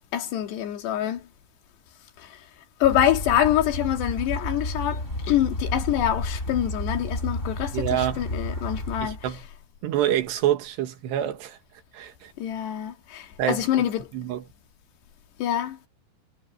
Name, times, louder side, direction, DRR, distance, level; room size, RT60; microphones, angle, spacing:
voice 1, 0.1-1.3 2.2-2.5 2.8-9.3 12.4-14.1 15.4-15.8, left 11 dB, 85° left, 4.3 m, -25 dB
sound 1, 2.8-9.3, left 1 dB, 15° left, 5.6 m, -31 dB
voice 2, 7.7-8.2 9.0-9.4 9.8-11.6 11.9-12.3 13.4-13.7 14.1-14.4, right 11 dB, 85° right, 3.8 m, -26 dB
omnidirectional pair, 4.7 m